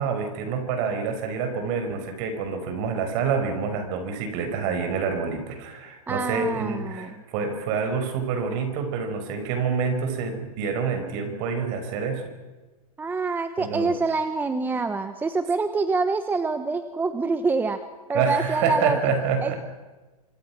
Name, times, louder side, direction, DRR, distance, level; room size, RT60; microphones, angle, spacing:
voice 1, 0.0-12.2 13.6-13.9 18.1-19.6, right 5 dB, 45° right, 7 dB, 5.7 m, -27 dB
voice 2, 6.1-7.1 13.0-17.8 18.1-19.1 19.4-19.5, right 4 dB, 10° right, 9 dB, 1.0 m, -26 dB
26.0 x 24.5 x 6.1 m, 1.2 s
hypercardioid pair, 135°, 20 cm